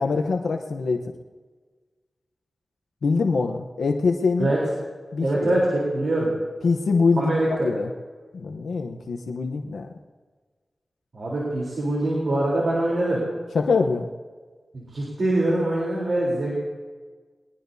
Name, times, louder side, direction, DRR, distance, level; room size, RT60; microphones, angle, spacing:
voice 1, 0.0-1.1 3.0-4.5 5.1-5.6 6.6-7.3 7.6-7.9 8.3-9.9 13.5-14.1, left 4 dB, 90° left, 3 dB, 0.9 m, -24 dB
voice 2, 5.2-6.3 7.2-7.7 11.1-13.2 14.7-16.5, right 1 dB, 70° right, -4 dB, 3.6 m, -23 dB
21.0 x 18.5 x 2.8 m, 1.5 s
cardioid pair, 55°, 0 cm